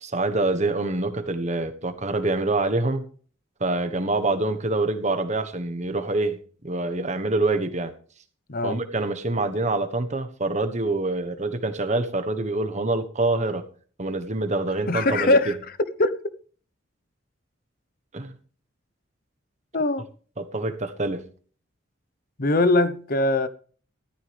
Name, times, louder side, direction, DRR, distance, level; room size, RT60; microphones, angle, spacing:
voice 1, 0.0-3.0 3.6-7.9 8.6-13.6 14.0-15.4 18.1-18.3 20.4-21.3, right 2 dB, 35° right, 1.3 m, -26 dB
voice 2, 8.5-8.8 14.9-15.6 16.0-16.2 19.7-20.1 22.4-23.5, left 2 dB, 50° left, 1.0 m, -21 dB
14.5 x 13.0 x 3.5 m
head